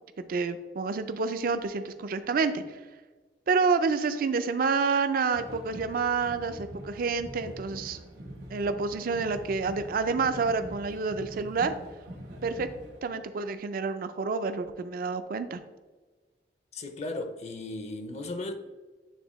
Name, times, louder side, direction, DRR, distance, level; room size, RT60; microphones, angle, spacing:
voice 1, 0.3-2.8 3.5-8.0 8.5-11.7 12.4-12.7 13.0-15.6, right 4 dB, 55° right, 0.4 m, -28 dB
sound 1, 5.3-13.0, equal, 75° right, 1.5 m, -44 dB
voice 2, 16.7-18.5, left 2 dB, 40° left, 0.5 m, -36 dB
9.2 x 3.4 x 3.0 m
head